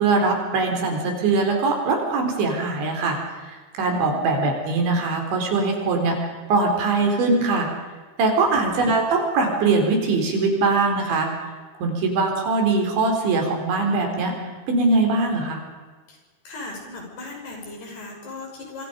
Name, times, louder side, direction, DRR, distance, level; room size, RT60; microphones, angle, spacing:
voice 1, 0.0-7.7 8.2-11.3 11.8-15.6, right 3 dB, 80° right, 3 dB, 6.6 m, -22 dB
voice 2, 16.4-18.9, left 2 dB, 60° left, 1 dB, 7.9 m, -37 dB
26.5 x 24.5 x 5.3 m, 1.4 s
omnidirectional pair, 5.1 m